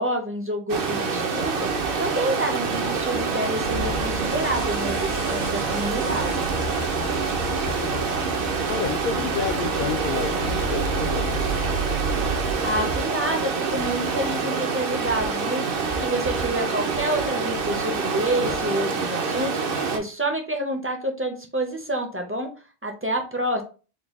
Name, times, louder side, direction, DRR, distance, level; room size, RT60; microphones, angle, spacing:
voice 1, 0.0-1.7 2.0-6.5 12.6-15.6 16.0-19.5 19.9-22.5 22.8-23.6, right 1 dB, 20° right, 0.4 m, -28 dB
Stream, 0.7-20.0, right 4 dB, 65° right, 0.8 m, -26 dB
sound 1, 2.6-11.9 12.4-13.4 13.9-14.9 15.6-16.4 17.1-17.9 18.6-19.0, right 3 dB, 80° right, 1.1 m, -44 dB
sound 2, 3.6-12.5, right 3 dB, 85° left, 1.0 m, -33 dB
voice 2, 7.3-11.5, left 7 dB, 60° left, 0.7 m, -31 dB
3.9 x 2.2 x 3.5 m
omnidirectional pair, 1.1 m